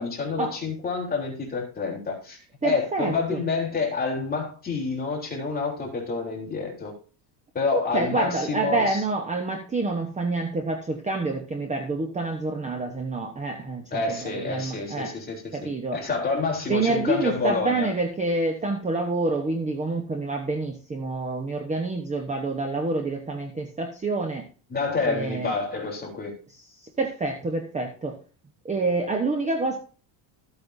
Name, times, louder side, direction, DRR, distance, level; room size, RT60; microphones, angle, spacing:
voice 1, 0.0-6.9 7.5-9.0 13.9-17.9 24.7-26.3, left 4 dB, 20° left, 3.5 m, -28 dB
voice 2, 2.6-3.4 7.7-15.1 15.5-16.0 16.7-24.5 25.0-25.5 26.7-28.2 28.6-29.8, right 3 dB, 15° right, 1.1 m, -27 dB
14.0 x 8.6 x 2.7 m
cardioid pair, 165°, 48 cm